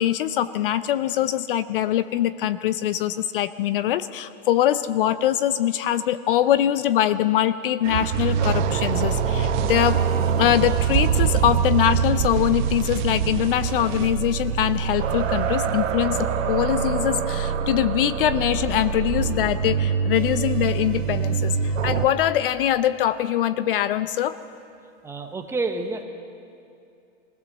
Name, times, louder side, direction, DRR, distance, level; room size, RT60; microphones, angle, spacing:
voice 1, 0.0-10.0 10.4-24.4, left 11 dB, 45° left, 14 dB, 0.6 m, -23 dB
sound 1, 7.8-14.1, right 13 dB, 40° right, 0.9 m, -28 dB
sound 2, 8.1-22.1, right 6 dB, 80° right, 1.9 m, -25 dB
voice 2, 25.0-26.0, right 3 dB, 5° right, 5 dB, 0.8 m, -28 dB
23.0 x 16.5 x 7.3 m, 2.6 s
supercardioid pair, 155°, 37 cm